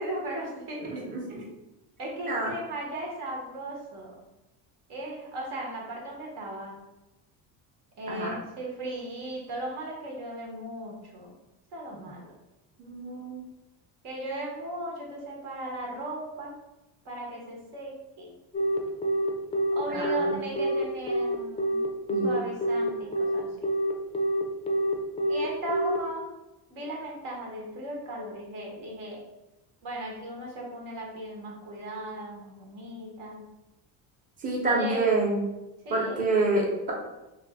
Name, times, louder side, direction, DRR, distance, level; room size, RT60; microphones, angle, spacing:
voice 1, 0.0-1.5 2.0-4.1 4.9-6.7 8.0-11.3 11.7-12.2 14.0-16.6 17.0-18.3 19.7-21.8 22.2-23.5 25.3-26.3 26.7-29.2 29.8-33.5 34.6-35.1 35.8-36.3, right 1 dB, 75° right, -2 dB, 1.1 m, -37 dB
voice 2, 12.8-13.4 19.9-20.3 22.1-22.3 34.4-35.5 35.9-36.9, right 2 dB, 20° right, -3 dB, 0.7 m, -27 dB
Telephone, 18.5-26.0, equal, 15° left, 0.3 m, -26 dB
2.5 x 2.5 x 3.4 m, 1.0 s
cardioid pair, 105°, 41 cm